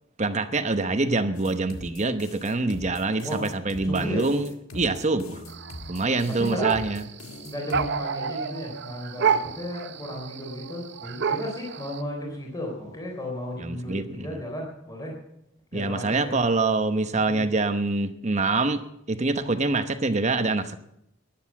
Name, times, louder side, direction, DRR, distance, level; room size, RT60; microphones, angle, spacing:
voice 1, 0.2-5.4 5.9-7.0 13.6-14.4 15.7-18.8 19.1-20.8, right 3 dB, 35° right, 9 dB, 0.9 m, -25 dB
sound 1, 1.3-7.9, left 1 dB, 85° left, 1.7 m, -42 dB
voice 2, 3.8-4.2 6.4-6.7 7.4-15.1 15.7-16.4, equal, 20° left, -1 dB, 3.7 m, -34 dB
sound 2, 5.5-12.0, right 6 dB, 55° right, 0.6 m, -30 dB
13.5 x 10.5 x 7.3 m, 0.78 s
head